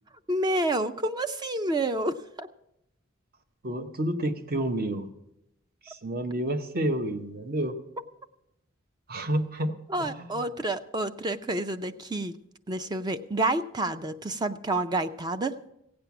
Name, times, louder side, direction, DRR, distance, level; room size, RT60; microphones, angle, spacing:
voice 1, 0.3-2.5 9.9-12.3 12.7-15.6, right 2 dB, 20° right, 9 dB, 0.4 m, -29 dB
voice 2, 3.6-5.1 5.8-7.8 9.1-10.4, right 1 dB, 45° right, 8 dB, 0.9 m, -30 dB
16.0 x 8.8 x 5.9 m, 0.84 s
head